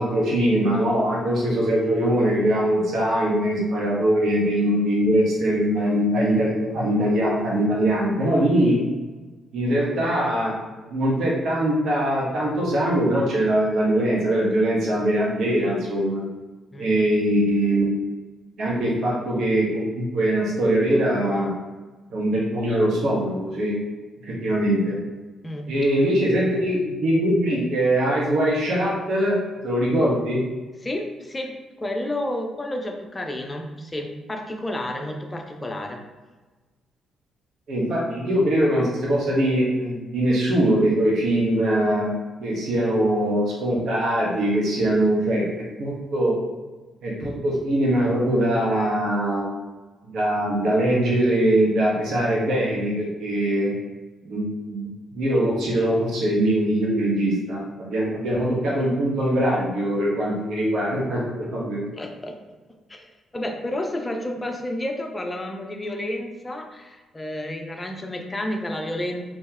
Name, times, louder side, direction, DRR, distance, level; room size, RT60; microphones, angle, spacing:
voice 1, 0.0-8.8 9.5-16.2 16.8-17.9 18.6-21.5 22.1-23.7 24.2-25.0 25.7-29.4 29.6-30.4 37.7-42.1 42.4-46.3 47.0-49.4 50.0-53.7 54.3-61.8, right 1 dB, 65° right, -4 dB, 1.1 m, -22 dB
voice 2, 16.7-17.1 25.4-25.7 30.8-36.0 62.0-62.4 62.9-69.2, left 1 dB, 20° left, 3 dB, 0.5 m, -31 dB
2.9 x 2.8 x 3.8 m, 1.3 s
cardioid pair, 90°, 0 cm